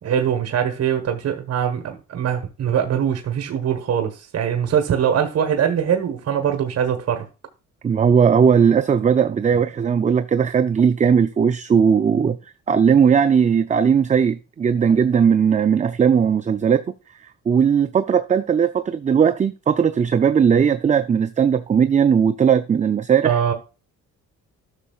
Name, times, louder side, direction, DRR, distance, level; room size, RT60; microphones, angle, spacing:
voice 1, 0.0-7.2 23.2-23.5, right 8 dB, 55° right, 1.3 m, -22 dB
voice 2, 7.8-12.4 12.7-16.8 17.5-23.4, right 7 dB, 25° right, 0.4 m, -18 dB
13.0 x 6.5 x 2.4 m
cardioid pair, 90°, 30 cm